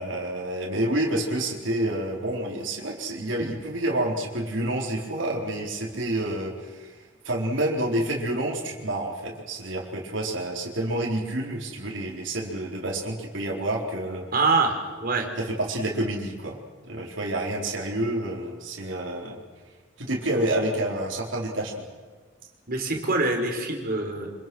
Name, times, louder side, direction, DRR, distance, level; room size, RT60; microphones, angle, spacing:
voice 1, 0.0-14.3 15.4-16.6 16.8-19.4 20.0-21.8, right 1 dB, 80° right, -2 dB, 4.3 m, -28 dB
voice 2, 14.3-15.3 22.7-24.3, right 3 dB, 50° right, 2 dB, 4.6 m, -24 dB
26.5 x 26.5 x 6.3 m, 1.4 s
head